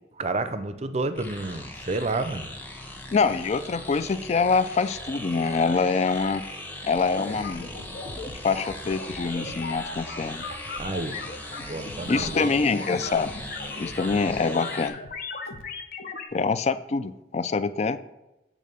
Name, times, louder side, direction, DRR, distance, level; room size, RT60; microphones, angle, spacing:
voice 1, 0.2-2.5 10.8-11.2 11.7-12.5, right 2 dB, 40° right, 11 dB, 0.6 m, -30 dB
sound 1, 1.2-14.9, left 1 dB, 10° left, 1.0 m, -39 dB
voice 2, 3.1-6.4 6.8-7.7 8.4-10.4 12.1-13.3 13.8-15.0 16.3-18.0, left 4 dB, 40° left, 14 dB, 0.4 m, -25 dB
sound 2, 7.0-16.3, left 3 dB, 55° left, 0.8 m, -38 dB
8.5 x 3.6 x 6.8 m, 0.99 s
head